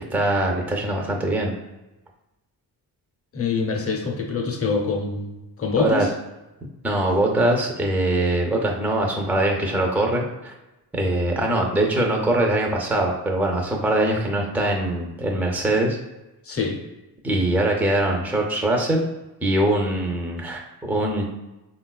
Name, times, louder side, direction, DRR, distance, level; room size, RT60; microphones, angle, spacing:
voice 1, 0.0-1.5 5.8-6.1 6.8-10.5 10.9-16.0 17.2-19.0 19.4-21.3, right 1 dB, 5° right, 1 dB, 0.4 m, -22 dB
voice 2, 3.3-6.1 16.4-16.8, left 4 dB, 35° left, 1 dB, 0.6 m, -25 dB
3.5 x 2.3 x 2.3 m, 1.0 s
cardioid pair, 80°, 41 cm